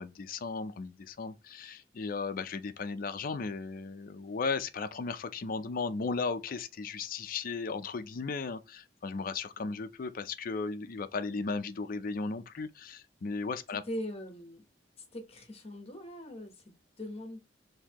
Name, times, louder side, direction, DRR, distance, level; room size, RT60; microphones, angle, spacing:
voice 1, 0.0-13.8, left 4 dB, 50° left, 0.5 m, -36 dB
voice 2, 13.9-14.6 15.0-17.4, left 1 dB, 35° left, 1.1 m, -41 dB
4.1 x 2.7 x 2.9 m
head